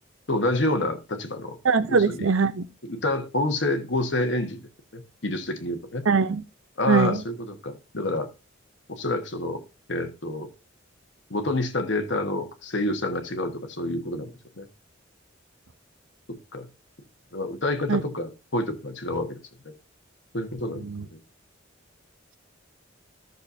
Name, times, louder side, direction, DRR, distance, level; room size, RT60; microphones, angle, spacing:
voice 1, 0.3-1.6 1.9-2.3 2.8-4.6 4.9-6.0 6.8-8.3 8.9-9.6 9.9-10.5 11.3-14.7 16.5-16.7 17.3-19.4 20.3-20.8 21.1-21.2, left 2 dB, 60° left, 1.4 m, -28 dB
voice 2, 1.6-2.7 6.1-6.4 6.9-7.2 17.9-18.0 20.8-21.0, right 5 dB, 85° right, 0.7 m, -21 dB
14.0 x 6.6 x 2.7 m
head